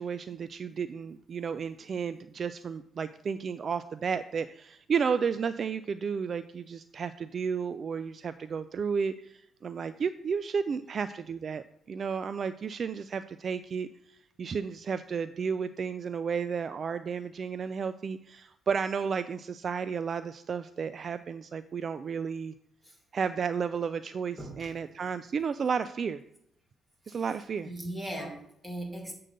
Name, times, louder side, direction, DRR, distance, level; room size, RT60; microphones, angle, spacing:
voice 1, 0.0-22.5 23.1-26.2 27.1-27.7, right 6 dB, 50° right, 12 dB, 0.3 m, -32 dB
voice 2, 24.4-24.8 27.1-29.1, right 1 dB, 10° right, 0 dB, 2.4 m, -40 dB
7.7 x 3.8 x 6.5 m, 0.75 s
cardioid pair, 90°, 0 cm